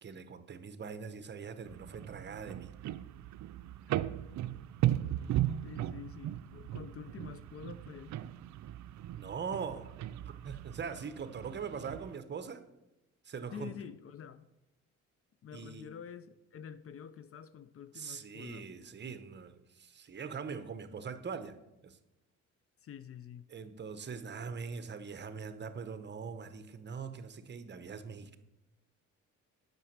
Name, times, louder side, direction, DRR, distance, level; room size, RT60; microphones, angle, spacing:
voice 1, 0.0-2.7 9.1-9.9 10.3-12.6 13.2-13.7 15.5-15.9 17.9-21.6 21.8-22.0 23.5-28.4, right 6 dB, 35° right, 0.9 m, -42 dB
sound 1, 1.6-12.2, right 13 dB, 70° right, 0.5 m, -37 dB
voice 2, 5.6-8.2 13.5-14.5 15.4-18.7 22.8-23.5, left 8 dB, 50° left, 0.5 m, -48 dB
8.1 x 6.1 x 7.2 m
cardioid pair, 90°, 30 cm